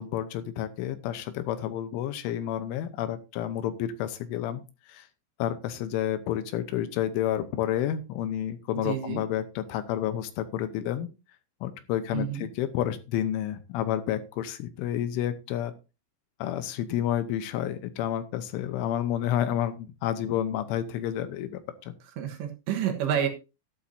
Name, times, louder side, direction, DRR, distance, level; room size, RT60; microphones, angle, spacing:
voice 1, 0.0-4.6 4.9-5.1 5.4-11.1 11.6-15.7 16.4-21.9, left 11 dB, 80° left, 11 dB, 3.2 m, -30 dB
voice 2, 8.7-9.2 12.1-12.4 22.2-23.3, right 9 dB, 70° right, 4 dB, 3.3 m, -29 dB
12.5 x 12.0 x 2.7 m, 0.29 s
omnidirectional pair, 5.9 m